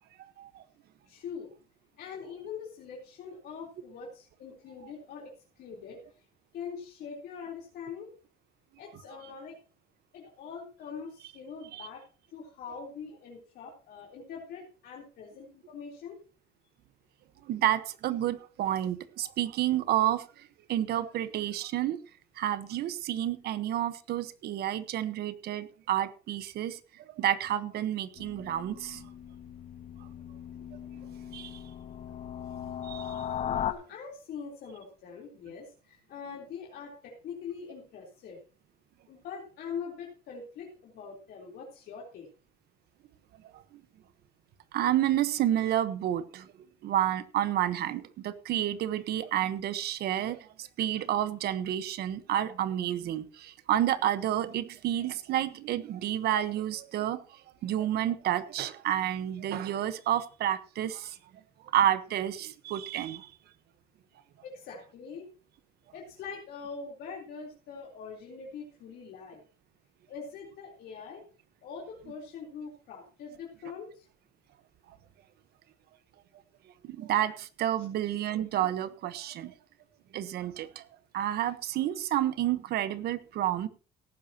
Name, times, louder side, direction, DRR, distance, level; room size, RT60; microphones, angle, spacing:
voice 1, 1.1-1.5 1.9-6.3 6.5-8.1 8.8-9.6 10.1-12.0 12.3-16.2 33.4-38.4 39.1-42.3 64.4-65.3 65.9-69.4 70.1-71.2 71.6-74.1 77.8-77.9, left 6 dB, 70° left, -2 dB, 3.8 m, -43 dB
voice 2, 17.5-20.2 20.7-22.0 22.4-26.8 27.2-29.0 31.3-31.6 32.8-33.1 43.5-43.6 44.7-46.5 46.8-57.2 57.6-61.2 61.7-63.3 76.8-79.5 80.1-80.8 81.1-83.7, right 12 dB, 70° right, 12 dB, 1.2 m, -30 dB
sound 1, 28.2-33.7, left 9 dB, 40° left, 0.9 m, -38 dB
18.0 x 10.5 x 2.9 m, 0.36 s
cardioid pair, 110°, 17 cm